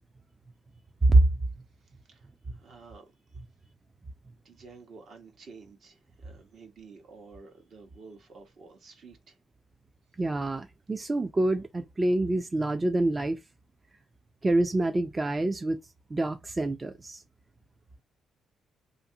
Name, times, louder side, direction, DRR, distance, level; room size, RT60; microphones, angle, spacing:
voice 1, 1.8-3.1 4.4-9.4, right 4 dB, 60° right, 1.0 m, -51 dB
voice 2, 10.2-13.4 14.4-15.8 16.1-17.2, right 2 dB, 25° right, 0.3 m, -26 dB
2.5 x 2.5 x 2.7 m
cardioid pair, 90°, 0 cm